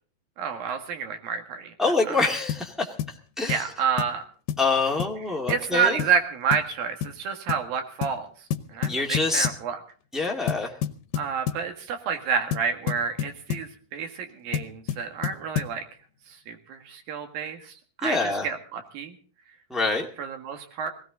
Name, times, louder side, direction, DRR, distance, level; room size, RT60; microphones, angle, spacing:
voice 1, 0.4-2.2 3.5-4.2 5.5-8.3 8.7-9.8 11.2-15.8 16.5-19.2 20.2-20.9, right 6 dB, 90° right, 6 dB, 3.6 m, -29 dB
voice 2, 1.8-2.9 3.4-3.6 4.6-6.0 8.9-9.5 10.1-10.7 18.0-18.5 19.7-20.1, left 3 dB, ahead, 0 dB, 1.1 m, -25 dB
sound 1, 2.5-2.7 3.0-3.2 3.5-3.7 4.0-4.2 4.5-4.7 5.0-5.2 5.5-5.7 6.0-6.2 6.5-6.7 7.0-7.2 7.5-7.7 8.0-8.2 8.5-9.7 10.5-11.7 12.5-13.7 14.5-15.8, left 9 dB, 80° left, 2.5 m, -30 dB
18.5 x 16.5 x 3.9 m, 0.41 s
omnidirectional pair, 4.0 m